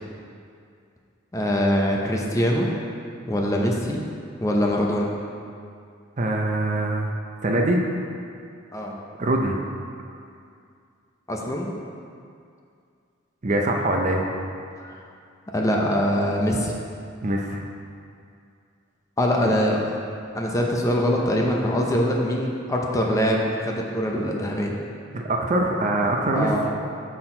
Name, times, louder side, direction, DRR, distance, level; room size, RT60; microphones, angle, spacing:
voice 1, 1.3-2.7 3.3-4.0 4.4-5.1 8.7-8.9 11.3-11.7 14.8-14.9 15.5-16.7 19.2-19.8 20.3-24.7 26.3-26.7, equal, 15° left, -1 dB, 0.6 m, -23 dB
voice 2, 6.2-7.1 7.4-7.8 9.2-9.6 13.4-14.2 17.2-17.6 19.4-19.5 25.1-26.6, right 1 dB, 35° right, 1 dB, 0.6 m, -23 dB
6.0 x 6.0 x 4.4 m, 2.4 s
head